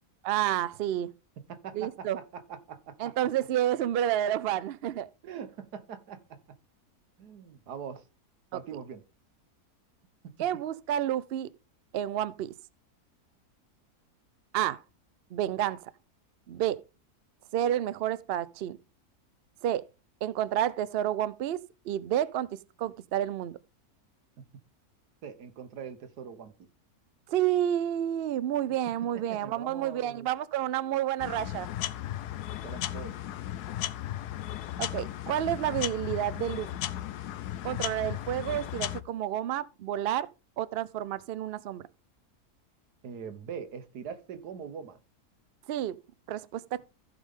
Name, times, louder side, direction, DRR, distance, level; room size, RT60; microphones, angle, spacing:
voice 1, 0.2-1.1 1.7-2.2 3.0-5.1 8.5-8.6 10.4-11.5 11.9-12.5 14.5-14.8 15.3-15.9 16.5-16.8 17.5-18.8 19.6-19.8 20.2-21.6 21.8-22.5 22.8-23.6 27.3-31.7 34.8-36.7 37.6-40.3 40.6-41.8 45.7-46.0 46.3-46.8, right 11 dB, 70° right, 0.5 m, -30 dB
voice 2, 1.4-3.1 5.2-6.4 7.2-8.0 8.5-9.0 10.2-10.3 25.2-26.7 28.9-29.0 29.3-30.3 32.6-33.1 43.0-45.0, right 7 dB, 90° right, 1.6 m, -42 dB
sound 1, 31.2-39.0, left 12 dB, 85° left, 1.2 m, -35 dB
15.0 x 5.2 x 3.6 m
omnidirectional pair, 1.6 m